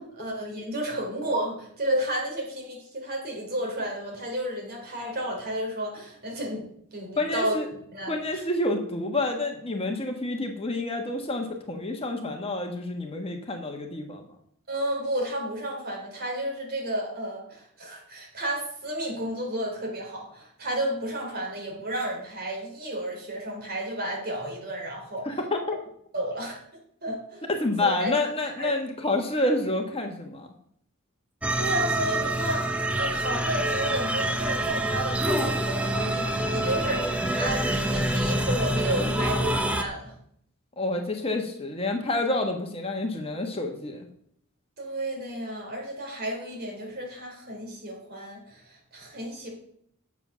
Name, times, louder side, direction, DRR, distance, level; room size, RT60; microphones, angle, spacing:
voice 1, 0.2-6.6 6.9-8.4 14.7-25.4 26.1-26.6 27.0-27.5 27.8-28.1 28.6-28.8 31.6-32.7 33.0-40.1 44.8-49.5, right 1 dB, 50° right, 0 dB, 3.8 m, -32 dB
voice 2, 7.2-7.7 8.1-14.2 25.2-25.8 27.5-30.5 40.8-44.0, left 2 dB, 25° left, 3 dB, 1.3 m, -28 dB
sound 1, 31.4-39.8, right 1 dB, 5° right, 0.8 m, -26 dB
9.8 x 7.2 x 6.2 m, 0.68 s
head